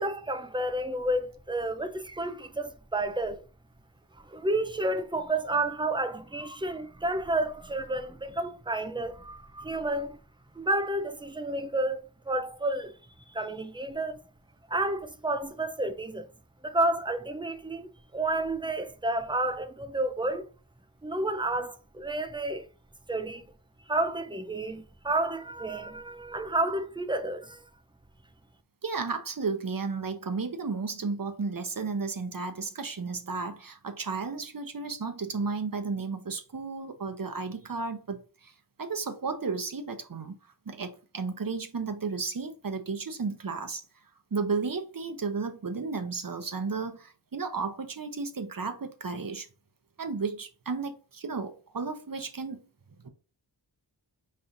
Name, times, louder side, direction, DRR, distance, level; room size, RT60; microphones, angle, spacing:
voice 1, 0.0-3.4 4.2-10.2 10.6-12.9 13.3-14.2 14.7-16.3 16.6-20.5 21.0-22.7 23.1-23.5 23.9-27.6, right 2 dB, 10° right, 0.6 m, -30 dB
voice 2, 28.8-38.5 38.8-40.4 40.7-43.8 44.3-49.5 50.0-52.6 53.0-53.1, right 4 dB, 50° right, 0.9 m, -33 dB
5.4 x 3.2 x 2.6 m
wide cardioid pair, 65°, 44 cm